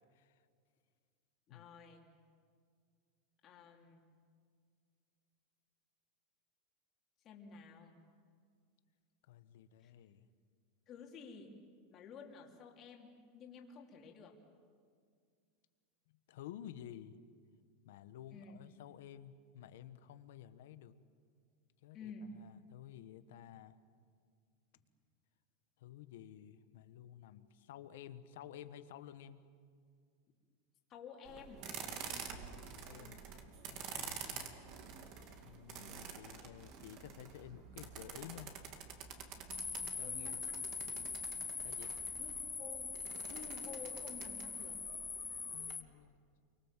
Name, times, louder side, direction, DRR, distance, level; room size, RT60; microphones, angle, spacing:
voice 1, 1.5-2.0 3.4-4.0 7.2-8.0 9.8-9.9 10.9-11.5 11.9-14.4 18.3-18.6 21.9-22.4 30.9-31.6 40.0-40.5 42.2-43.0 43.3-44.8, left 5 dB, 30° left, 1 dB, 3.1 m, -52 dB
voice 2, 9.3-10.3 16.1-17.2 17.8-20.9 21.8-22.0 22.3-23.8 25.8-29.4 32.4-33.2 33.7-34.5 35.4-38.6 39.8-40.4 41.6-41.9 45.5-46.2, left 11 dB, 70° left, 11 dB, 1.3 m, -53 dB
sound 1, 31.2-45.7, right 6 dB, 40° right, 2.3 m, -49 dB
sound 2, 39.5-45.8, left 5 dB, 10° left, 0.6 m, -42 dB
28.5 x 24.5 x 7.5 m, 2.1 s
supercardioid pair, 165°, 0 cm